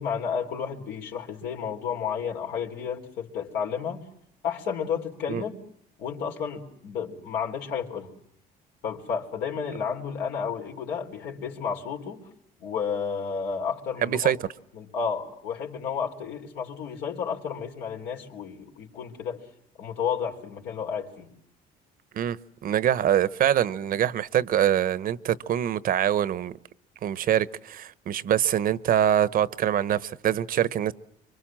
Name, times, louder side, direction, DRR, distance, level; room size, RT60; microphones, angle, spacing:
voice 1, 0.0-4.0 4.4-5.5 6.0-8.1 8.8-12.2 12.6-14.3 14.7-19.4 19.8-21.3, left 6 dB, 80° left, 3.9 m, -32 dB
voice 2, 14.0-14.4 22.1-26.6 27.0-30.9, right 10 dB, 55° right, 1.0 m, -24 dB
26.0 x 24.5 x 7.5 m
cardioid pair, 110°, 17 cm